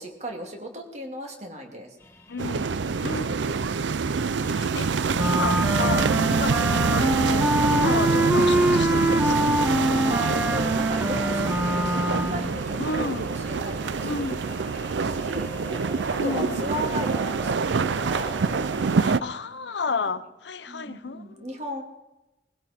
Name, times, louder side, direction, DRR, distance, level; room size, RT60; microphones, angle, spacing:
voice 1, 0.0-2.0 9.7-15.7 16.1-18.4 20.7-21.8, equal, 40° right, 2.4 m, -36 dB
sound 1, 2.0-19.2, equal, 15° left, 1.5 m, -44 dB
voice 2, 2.3-2.7 3.0-3.6 4.4-4.9 5.2-9.5 12.8-13.3 14.0-14.4 16.2-16.7 19.0-21.6, left 4 dB, 80° left, 0.8 m, -32 dB
sound 2, 2.4-19.2, right 5 dB, 85° right, 0.5 m, -26 dB
Wind instrument woodwind instrument, 5.1-12.5, right 1 dB, 10° right, 0.8 m, -24 dB
20.5 x 16.0 x 4.4 m
head